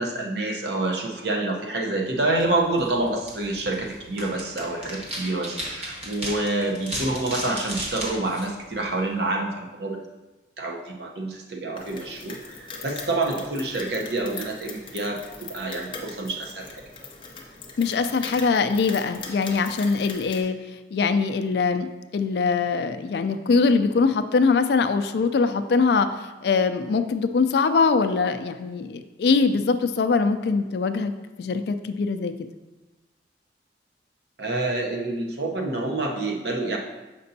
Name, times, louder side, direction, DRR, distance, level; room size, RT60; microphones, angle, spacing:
voice 1, 0.0-10.1 10.6-16.7 34.4-36.8, right 2 dB, 65° right, 1 dB, 0.8 m, -27 dB
sound 1, 2.3-9.2, right 1 dB, 35° right, 1.1 m, -36 dB
sound 2, 11.8-20.4, left 3 dB, 25° left, 0.7 m, -40 dB
voice 2, 17.8-20.6 20.9-21.9 22.1-32.3, left 4 dB, 65° left, 9 dB, 0.3 m, -22 dB
6.7 x 5.2 x 2.7 m, 1.1 s
head